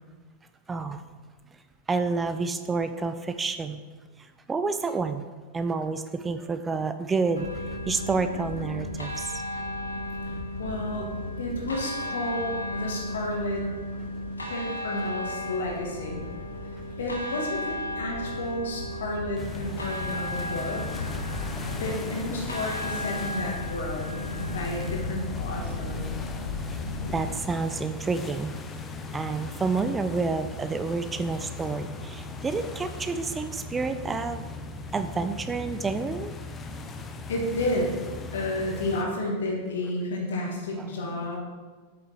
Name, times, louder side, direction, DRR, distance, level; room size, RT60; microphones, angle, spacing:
voice 1, 0.7-1.0 1.9-3.8 4.5-5.3 5.5-7.5 7.9-9.3 27.1-28.6 29.1-34.4 34.9-36.3 40.8-40.9, right 4 dB, 15° right, 10 dB, 0.3 m, -29 dB
sound 1, 7.3-27.3, left 1 dB, 80° left, 1.1 m, -34 dB
voice 2, 10.6-11.1 11.4-13.7 14.5-16.2 17.0-21.1 21.7-26.1 37.3-37.9 38.3-41.4, left 1 dB, 60° left, -1 dB, 1.7 m, -31 dB
sound 2, 19.4-39.0, left 3 dB, 20° left, 0.7 m, -38 dB
8.5 x 6.4 x 3.0 m, 1.4 s
figure-of-eight pair, 90°, 0 cm